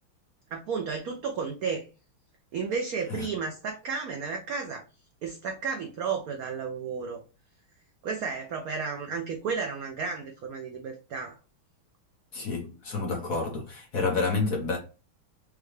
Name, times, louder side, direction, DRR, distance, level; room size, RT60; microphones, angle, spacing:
voice 1, 0.5-1.8 2.5-4.8 5.2-7.2 8.0-11.4, right 5 dB, 85° right, 0.8 m, -32 dB
voice 2, 12.3-14.8, left 3 dB, 50° left, 1.2 m, -29 dB
5.3 x 2.3 x 3.2 m
omnidirectional pair, 2.3 m